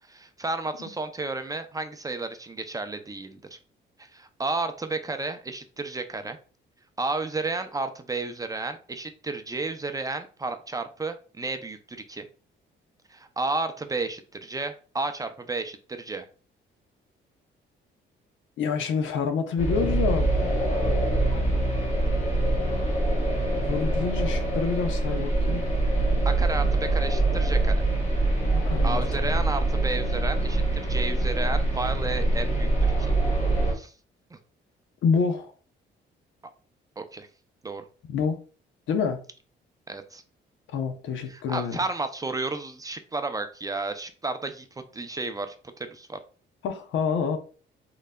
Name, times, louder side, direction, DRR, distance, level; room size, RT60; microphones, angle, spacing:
voice 1, 0.1-3.6 4.0-6.4 7.0-12.3 13.1-16.3 26.3-27.9 28.8-33.1 33.7-33.9 34.3-34.4 37.0-37.3 37.6-37.8 39.9-40.2 41.3-44.7 44.9-46.2, right 3 dB, 20° right, 0.4 m, -32 dB
voice 2, 18.6-20.3 23.6-25.6 28.5-29.0 35.0-35.5 38.1-38.4 38.9-39.2 40.7-41.8 46.6-47.4, left 5 dB, 75° left, 0.7 m, -27 dB
sound 1, 19.6-33.7, right 2 dB, 35° left, 1.7 m, -24 dB
3.8 x 3.2 x 2.2 m
cardioid pair, 90°, 20 cm